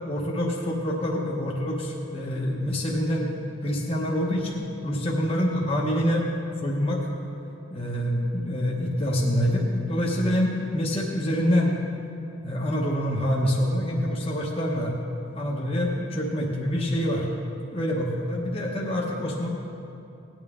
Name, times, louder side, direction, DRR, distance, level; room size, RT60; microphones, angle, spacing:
voice 1, 0.1-3.3 3.6-6.3 6.6-7.1 7.7-11.7 12.4-14.9 15.3-17.3 17.7-19.5, equal, 30° left, -3 dB, 0.9 m, -26 dB
18.0 x 8.9 x 3.6 m, 2.7 s
head